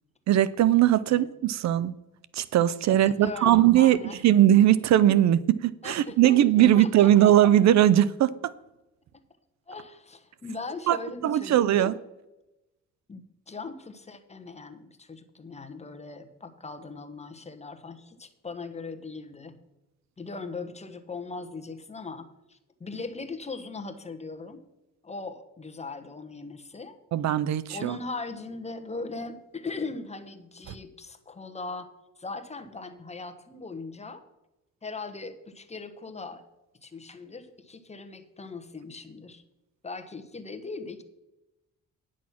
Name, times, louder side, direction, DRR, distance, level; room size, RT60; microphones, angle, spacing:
voice 1, 0.3-1.9 2.3-4.0 4.2-8.5 10.9-11.0 11.2-11.9 27.1-28.0, right 12 dB, 65° right, 0.5 m, -20 dB
voice 2, 2.9-4.2 5.8-7.3 9.1-9.2 9.7-12.0 13.1-19.6 20.2-24.6 25.0-27.0 27.7-31.9 32.2-34.2 34.8-36.4 36.8-39.4 39.8-41.0, left 3 dB, 20° left, 1.2 m, -39 dB
9.9 x 6.3 x 5.8 m
cardioid pair, 90°, 30 cm